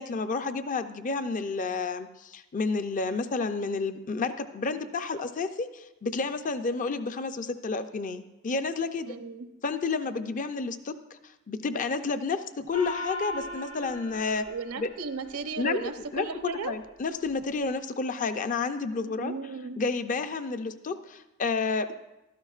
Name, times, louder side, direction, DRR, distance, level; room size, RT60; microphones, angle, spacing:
voice 1, 0.0-9.1 9.6-11.2 11.5-14.4 14.8-14.9 15.6-15.8 16.1-19.3 19.8-21.9, left 4 dB, 40° left, 10 dB, 0.4 m, -30 dB
voice 2, 9.0-9.5 14.4-16.7 19.1-19.8, right 4 dB, 85° right, 8 dB, 0.8 m, -35 dB
Gong, 12.7-15.6, left 1 dB, 80° left, 3.1 m, -38 dB
15.0 x 12.5 x 2.4 m, 0.93 s
head